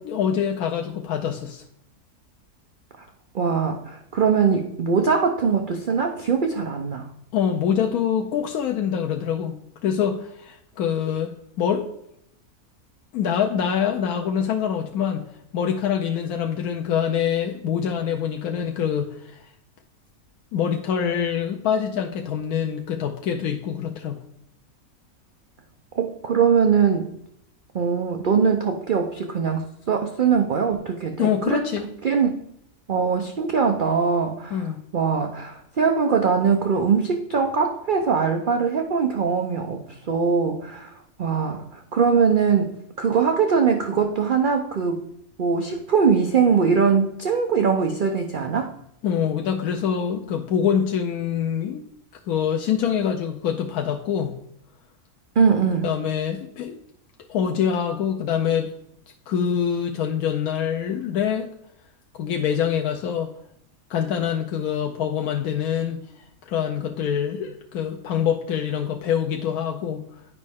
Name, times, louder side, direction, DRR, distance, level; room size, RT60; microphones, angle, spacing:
voice 1, 0.0-1.6 7.3-9.6 9.8-11.9 13.1-15.2 15.5-19.5 20.5-24.2 31.2-31.9 34.5-34.8 49.0-51.8 52.3-54.4 55.8-56.8 57.3-58.7 59.3-61.5 62.1-63.3 63.9-70.0, left 8 dB, 90° left, 3 dB, 1.1 m, -25 dB
voice 2, 3.3-7.1 25.9-27.1 27.7-31.6 32.0-32.3 32.9-40.9 41.2-45.0 45.4-48.7 55.4-55.9, right 6 dB, 50° right, 4 dB, 0.6 m, -22 dB
9.6 x 5.3 x 3.6 m, 0.74 s
omnidirectional pair, 1.5 m